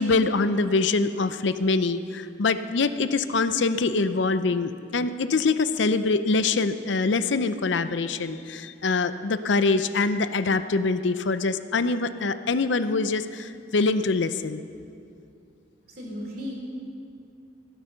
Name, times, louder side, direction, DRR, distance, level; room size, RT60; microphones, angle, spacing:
voice 1, 0.0-14.6, left 3 dB, 75° left, 12 dB, 0.6 m, -24 dB
voice 2, 15.8-16.5, left 1 dB, 50° right, -1 dB, 3.0 m, -35 dB
16.0 x 9.6 x 6.8 m, 2.5 s
head